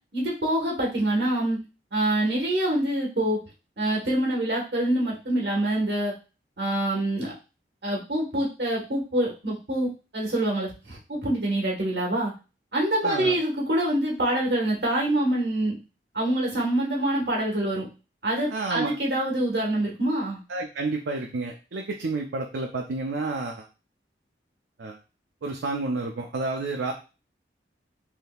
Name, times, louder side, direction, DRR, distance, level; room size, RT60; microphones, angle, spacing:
voice 1, 0.1-1.6 1.9-3.4 3.8-6.1 6.6-7.3 7.8-12.3 12.7-15.8 16.1-17.9 18.2-20.4, right 1 dB, 70° right, -3 dB, 1.2 m, -25 dB
voice 2, 13.0-13.4 18.5-18.9 20.5-23.7 24.8-25.0 25.4-26.9, right 3 dB, 85° right, 1 dB, 0.5 m, -30 dB
3.5 x 2.7 x 2.3 m, 0.31 s
head